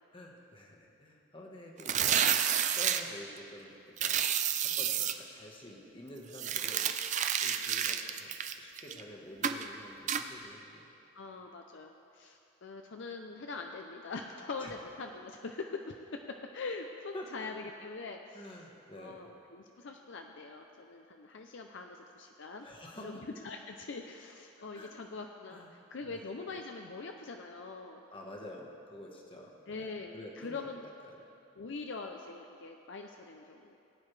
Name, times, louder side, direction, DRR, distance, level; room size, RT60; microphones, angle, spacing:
voice 1, 0.1-2.4 2.7-4.2 4.6-6.9 7.4-10.9 14.6-14.7 17.1-17.5 18.3-19.2 22.5-23.2 24.6-24.9 25.5-25.7 26.0-26.2 28.1-30.7 31.0-31.2, left 1 dB, 25° left, -1 dB, 1.3 m, -49 dB
sound 1, 1.8-3.0 4.0-5.1 6.3-9.0 9.4-9.7 10.1-10.2, right 9 dB, 35° right, 0.4 m, -30 dB
voice 2, 11.2-16.1 16.5-18.5 19.0-22.7 23.0-28.0 29.7-30.9 31.6-33.7, left 3 dB, 60° left, 3 dB, 0.5 m, -43 dB
20.0 x 9.4 x 3.3 m, 2.7 s
head